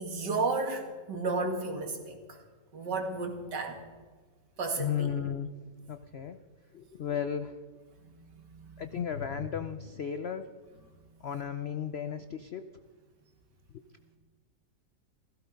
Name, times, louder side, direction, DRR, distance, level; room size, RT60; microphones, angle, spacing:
voice 1, 0.0-2.4 2.7-3.8 4.6-5.1 8.0-8.1 8.4-8.8 9.1-9.3, right 3 dB, 70° right, 4 dB, 2.5 m, -33 dB
voice 2, 4.8-5.5 5.9-6.4 6.7-7.6 8.8-10.5 11.2-12.7 13.7-13.8, left 8 dB, 80° left, 10 dB, 0.5 m, -34 dB
15.5 x 15.0 x 5.2 m, 1.4 s
omnidirectional pair, 1.9 m